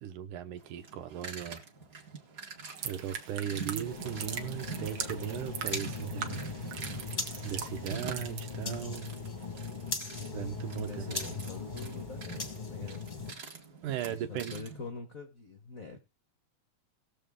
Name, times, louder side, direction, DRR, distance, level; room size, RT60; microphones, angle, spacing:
voice 1, 0.0-1.6 2.8-6.4 7.4-9.1 10.3-11.4 13.8-14.6, right 10 dB, 80° right, 2.5 m, -37 dB
sound 1, 0.6-14.9, right 4 dB, 40° right, 1.3 m, -46 dB
sound 2, 2.7-9.1 9.4-9.7, right 7 dB, 65° right, 1.3 m, -41 dB
sound 3, 3.8-13.3, left 4 dB, 40° left, 0.6 m, -39 dB
voice 2, 10.8-13.1 14.1-16.0, left 4 dB, 80° left, 0.7 m, -44 dB
19.0 x 6.9 x 3.7 m
omnidirectional pair, 3.6 m